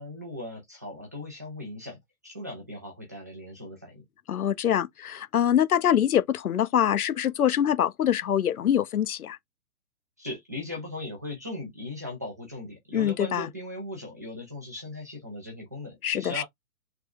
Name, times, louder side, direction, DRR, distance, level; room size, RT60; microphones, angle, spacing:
voice 1, 0.0-2.0 2.2-4.0 10.2-16.4, left 1 dB, 15° right, 0.3 m, -38 dB
voice 2, 4.3-9.4 12.9-13.5 16.0-16.4, left 10 dB, 85° left, 0.6 m, -24 dB
3.3 x 2.2 x 2.4 m
figure-of-eight pair, 125°, 42 cm